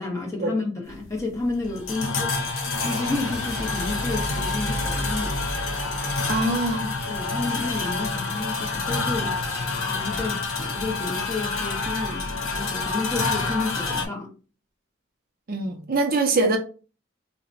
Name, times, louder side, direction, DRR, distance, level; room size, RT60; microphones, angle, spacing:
voice 1, 0.0-2.3 2.8-5.5 7.1-9.3 9.7-14.3, left 3 dB, 15° left, 0.8 m, -31 dB
sound 1, 0.9-14.1, left 3 dB, 90° left, 0.8 m, -28 dB
sound 2, 2.7-7.4, equal, 65° left, 1.1 m, -34 dB
voice 2, 6.3-7.0 15.5-16.6, right 2 dB, 45° right, 0.5 m, -23 dB
2.8 x 2.1 x 4.0 m
head